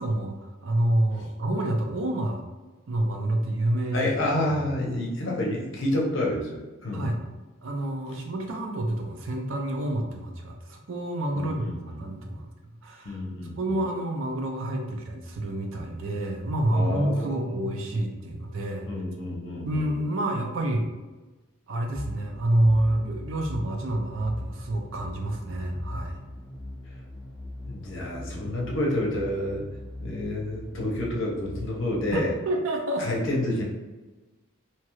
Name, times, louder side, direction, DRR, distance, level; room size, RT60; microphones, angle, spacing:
voice 1, 0.0-2.4 2.9-4.1 4.5-4.6 6.9-7.2 7.6-12.5 12.8-13.2 13.6-18.9 19.7-20.9 21.7-26.2 32.1-33.1, right 1 dB, 65° right, 2 dB, 0.5 m, -28 dB
voice 2, 3.9-7.1 11.3-12.0 13.0-13.6 16.7-17.7 18.9-19.9 27.6-29.6 30.0-32.3 33.0-33.6, left 1 dB, 60° left, -2 dB, 0.7 m, -29 dB
sound 1, 21.9-32.2, left 1 dB, 5° left, 0.9 m, -40 dB
2.8 x 2.3 x 3.0 m, 1.2 s
head